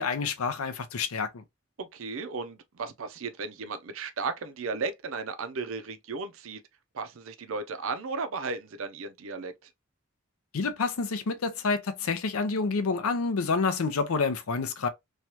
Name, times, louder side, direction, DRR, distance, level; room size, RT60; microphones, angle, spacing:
voice 1, 0.0-1.4 10.5-14.9, left 4 dB, 85° left, 0.5 m, -28 dB
voice 2, 1.8-6.6 6.9-9.7, right 4 dB, 75° right, 0.5 m, -35 dB
3.2 x 2.3 x 2.8 m
head